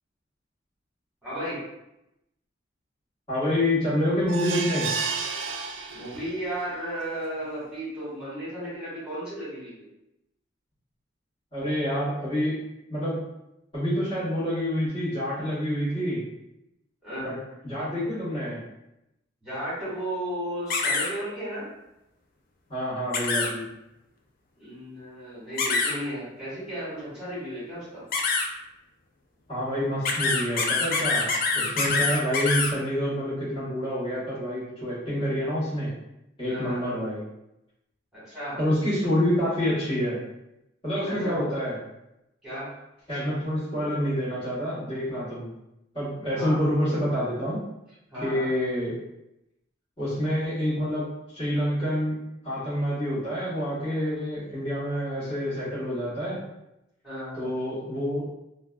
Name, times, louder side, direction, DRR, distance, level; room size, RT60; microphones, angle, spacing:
voice 1, 1.2-1.6 5.9-9.8 17.0-17.3 19.4-21.6 24.6-28.0 36.5-36.9 38.1-38.6 41.0-41.4 42.4-42.7 46.3-46.6 48.1-48.5 57.0-57.5, right 1 dB, 5° right, -12 dB, 1.4 m, -34 dB
voice 2, 3.3-4.9 11.5-12.6 12.9-13.2 13.7-16.2 17.2-17.4 17.6-18.6 22.7-23.6 29.5-31.3 31.5-35.9 36.4-37.2 38.6-40.2 40.8-41.8 43.1-45.5 45.9-47.6 48.2-49.0 50.0-51.1 51.3-52.1 52.4-56.4 57.4-58.2, equal, 25° left, -13 dB, 1.1 m, -27 dB
sound 1, 4.3-6.5 7.0-7.1 7.4-7.5, right 5 dB, 75° right, 0.3 m, -31 dB
sound 2, 20.7-21.1 23.1-23.5 25.6-25.9 28.1-28.5 30.0-32.7, left 4 dB, 50° left, 0.3 m, -25 dB
2.6 x 2.2 x 2.2 m, 0.87 s
head